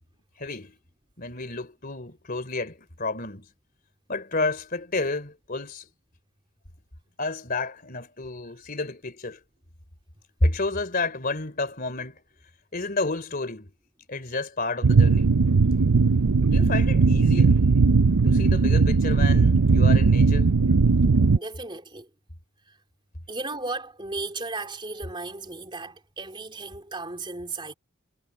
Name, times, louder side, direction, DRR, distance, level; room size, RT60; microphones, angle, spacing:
voice 1, 0.4-0.8 1.2-3.5 4.1-5.9 7.2-9.4 10.4-12.2 12.7-13.7 14.1-15.4 16.5-17.6 18.2-20.5, left 2 dB, 40° left, 3.4 m, -30 dB
sound 1, 14.8-21.4, right 4 dB, 80° right, 0.6 m, -18 dB
voice 2, 21.3-22.1 23.3-27.7, right 3 dB, 20° right, 3.6 m, -35 dB
head